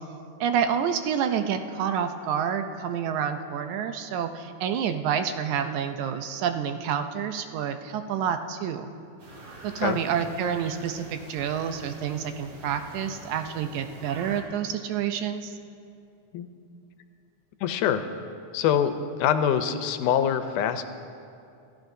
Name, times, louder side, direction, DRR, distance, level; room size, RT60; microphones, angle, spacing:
voice 1, 0.4-8.9 9.6-15.5, right 8 dB, 80° right, 7 dB, 2.0 m, -28 dB
sound 1, 9.2-14.4, right 1 dB, 55° right, 3.1 m, -45 dB
voice 2, 17.6-18.0 18.5-20.8, left 9 dB, 85° left, 9 dB, 2.2 m, -24 dB
27.5 x 13.5 x 2.7 m, 2.6 s
omnidirectional pair, 3.5 m